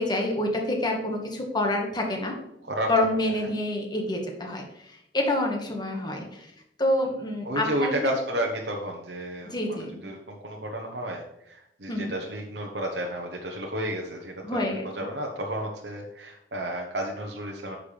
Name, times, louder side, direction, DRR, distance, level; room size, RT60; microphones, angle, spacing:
voice 1, 0.0-2.4 2.9-6.5 6.8-8.1 9.4-10.0 11.9-12.1 14.4-14.8, left 1 dB, 25° left, 2 dB, 1.7 m, -27 dB
voice 2, 7.4-14.6 14.8-17.8, right 1 dB, 70° right, 0 dB, 1.1 m, -32 dB
10.0 x 6.7 x 3.4 m, 0.80 s
head